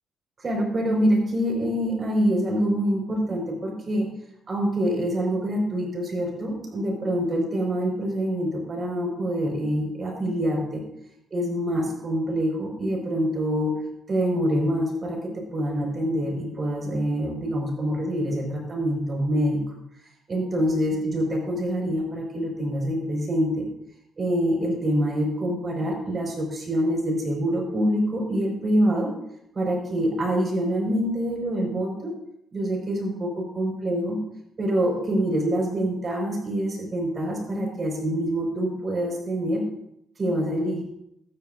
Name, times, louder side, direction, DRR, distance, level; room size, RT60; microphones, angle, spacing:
voice 1, 0.4-4.1 4.5-10.8 11.3-13.7 14.1-15.2 15.5-19.6 20.3-23.6 24.2-29.1 29.6-32.1 32.5-34.2 34.6-39.6 40.2-40.8, equal, 40° right, 0 dB, 5.2 m, -25 dB
14.5 x 13.0 x 2.6 m, 0.80 s
cardioid pair, 90°, 0 cm